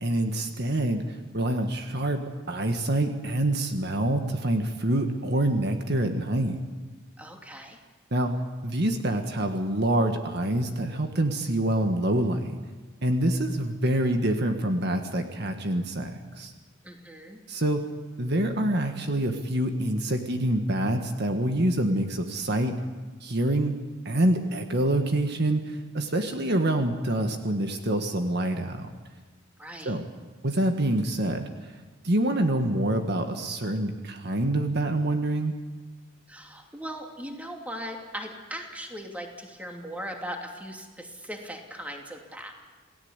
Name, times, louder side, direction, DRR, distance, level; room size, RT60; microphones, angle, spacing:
voice 1, 0.0-2.2 2.5-6.6 8.1-8.3 8.6-12.5 13.0-16.5 17.5-17.8 18.2-22.8 23.2-23.7 24.1-28.9 29.8-30.1 30.4-31.5 32.0-35.5, right 1 dB, 55° right, 5 dB, 1.7 m, -26 dB
voice 2, 7.2-7.8 16.8-17.4 29.6-30.0 36.3-42.5, equal, 5° right, 2 dB, 2.8 m, -39 dB
28.0 x 17.5 x 8.2 m, 1.3 s
head